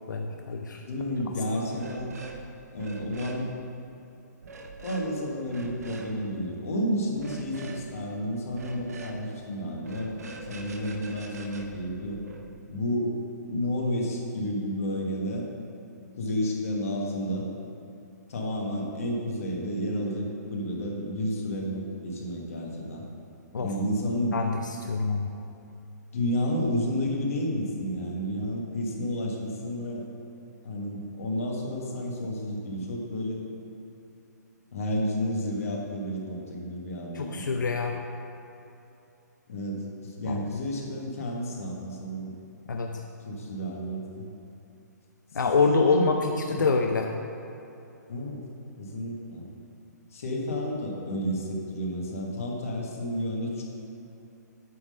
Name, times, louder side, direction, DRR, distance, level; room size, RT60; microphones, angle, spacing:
voice 1, 0.1-0.8 23.5-23.7 24.3-24.5 24.8-25.3 37.1-38.0 40.3-40.4 42.7-43.0 45.3-47.1, left 4 dB, 90° left, 3 dB, 0.6 m, -26 dB
voice 2, 0.9-2.1 2.7-3.5 4.8-12.2 12.7-13.1 13.5-15.5 16.2-17.5 18.3-23.0 23.6-24.4 26.1-30.0 30.6-33.4 34.7-37.4 39.5-42.3 43.2-44.3 45.6-46.1 46.5-46.7 48.1-48.4 48.8-49.5 50.1-53.6, equal, 50° left, -1 dB, 1.5 m, -31 dB
sound 1, 1.7-2.4 2.7-3.4 4.4-5.1 5.4-6.1 7.1-7.8 8.5-9.2 9.8-12.5, right 3 dB, 55° right, 0.8 m, -43 dB
9.2 x 3.7 x 6.6 m, 2.8 s
hypercardioid pair, 170°, 10 cm